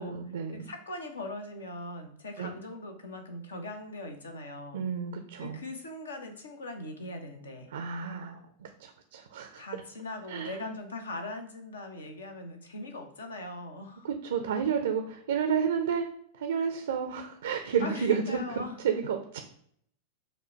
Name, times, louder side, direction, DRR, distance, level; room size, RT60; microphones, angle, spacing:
voice 1, 0.0-0.7 2.4-2.5 4.7-5.6 7.7-9.6 10.3-10.6 14.0-16.1 16.3-18.6 18.8-19.4, right 7 dB, 60° right, 5 dB, 0.4 m, -31 dB
voice 2, 0.5-4.8 5.4-7.7 9.6-14.1 17.8-18.8, left 2 dB, 70° left, 5 dB, 0.7 m, -40 dB
5.1 x 2.2 x 4.4 m, 0.65 s
figure-of-eight pair, 90°, 0 cm